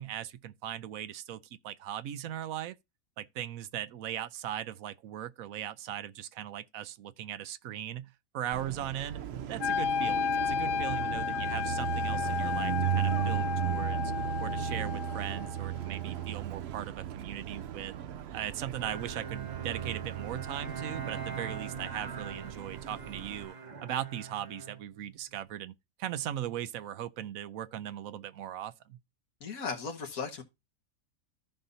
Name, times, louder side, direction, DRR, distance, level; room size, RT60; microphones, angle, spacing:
voice 1, 0.0-2.8 3.2-9.2 9.5-14.1 14.4-17.9 18.3-23.6 23.8-29.0, right 11 dB, 80° right, 1.1 m, -39 dB
Car passing by, 8.5-23.5, right 12 dB, 60° right, 0.7 m, -36 dB
Wind instrument woodwind instrument, 9.6-15.7, left 7 dB, 65° left, 1.1 m, -32 dB
Bowed string instrument, 18.8-25.5, right 5 dB, 30° right, 1.3 m, -43 dB
voice 2, 29.4-30.4, left 5 dB, 80° left, 2.0 m, -36 dB
14.5 x 5.6 x 2.7 m
omnidirectional pair, 1.5 m